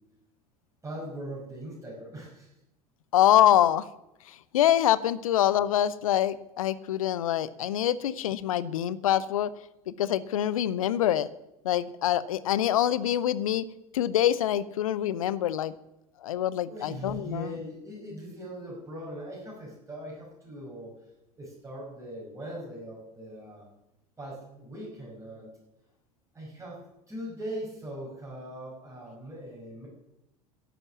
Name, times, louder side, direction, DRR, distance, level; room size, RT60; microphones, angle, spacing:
voice 1, 0.8-2.5 16.7-20.9 21.4-23.7 24.2-25.5 26.3-26.8 27.1-29.9, right 1 dB, 15° right, -4 dB, 5.8 m, -40 dB
voice 2, 3.1-3.9 4.3-9.5 9.9-11.3 11.6-13.6 13.9-15.7 16.2-17.6, left 11 dB, 65° left, 18 dB, 0.7 m, -25 dB
11.0 x 11.0 x 7.3 m, 0.87 s
figure-of-eight pair, 75°, 19 cm